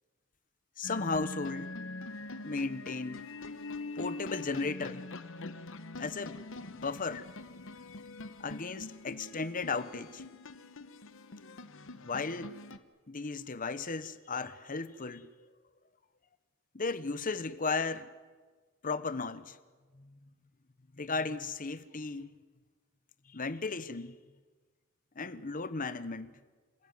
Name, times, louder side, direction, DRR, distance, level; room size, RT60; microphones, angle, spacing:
sound 1, 0.8-12.8, left 2 dB, 65° left, 1.1 m, -44 dB
voice 1, 0.8-1.7 2.4-3.3 4.0-5.1 6.0-6.4 6.7-7.3 8.4-10.2 12.0-12.6 13.1-15.3 16.7-18.1 18.8-19.6 19.9-20.3 21.0-22.3 23.3-24.2 25.1-26.4, left 4 dB, 40° left, 1.1 m, -35 dB
27.5 x 15.5 x 9.5 m
head